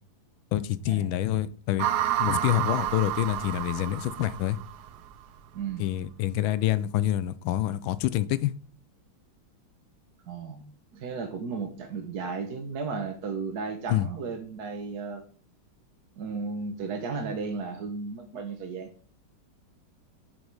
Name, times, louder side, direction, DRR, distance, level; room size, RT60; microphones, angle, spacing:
voice 1, 0.5-1.9 2.2-4.6 5.8-8.5 13.9-14.1, left 13 dB, 75° left, 16 dB, 1.3 m, -27 dB
sound 1, 1.8-5.1, right 12 dB, 70° right, 1.0 m, -30 dB
voice 2, 5.5-5.9 10.3-10.6 10.9-15.2 16.2-18.9, right 4 dB, 55° right, 5 dB, 1.4 m, -34 dB
9.4 x 5.2 x 4.8 m, 0.43 s
omnidirectional pair, 2.3 m